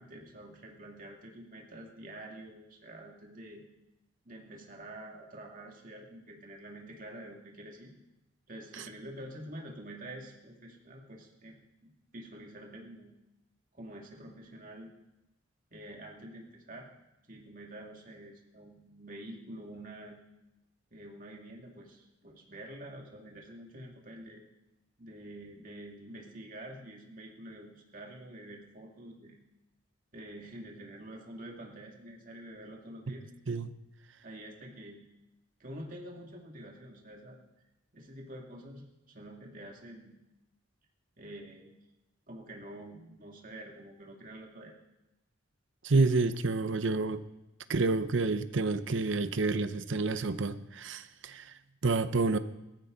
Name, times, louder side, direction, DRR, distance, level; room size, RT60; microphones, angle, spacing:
voice 1, 0.0-3.6 4.2-7.9 8.5-13.1 13.7-14.9 15.7-16.9 17.3-20.2 20.9-24.4 25.0-29.4 30.1-33.3 34.2-35.1 35.6-37.4 37.9-40.2 41.2-41.8 42.3-44.7, right 1 dB, 45° right, 0 dB, 2.4 m, -47 dB
voice 2, 45.8-47.2 47.7-52.4, right 3 dB, 65° right, 12 dB, 0.8 m, -29 dB
17.5 x 14.5 x 4.0 m, 0.94 s
head